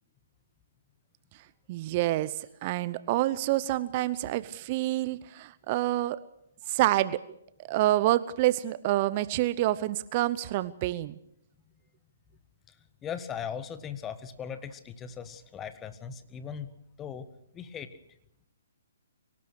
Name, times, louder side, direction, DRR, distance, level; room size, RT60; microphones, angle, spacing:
voice 1, 1.7-6.2 6.7-7.2 7.6-11.1, right 15 dB, 35° right, 17 dB, 0.7 m, -27 dB
voice 2, 13.0-16.7 17.0-17.3 17.5-18.0, left 7 dB, 15° left, 12 dB, 1.4 m, -38 dB
24.0 x 18.5 x 6.5 m, 0.78 s
figure-of-eight pair, 130°, 0 cm